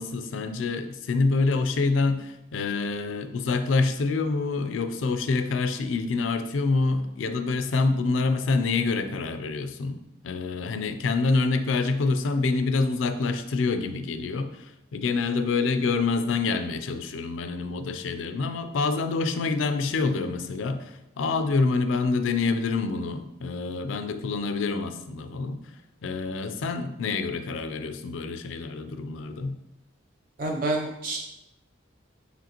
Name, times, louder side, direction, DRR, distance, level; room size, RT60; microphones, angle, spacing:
voice 1, 0.0-10.0 10.2-25.6 26.0-29.6, left 3 dB, 80° left, 9 dB, 0.4 m, -26 dB
voice 2, 30.4-31.2, right 2 dB, 45° right, 1 dB, 0.4 m, -28 dB
5.0 x 3.2 x 2.9 m, 0.88 s
head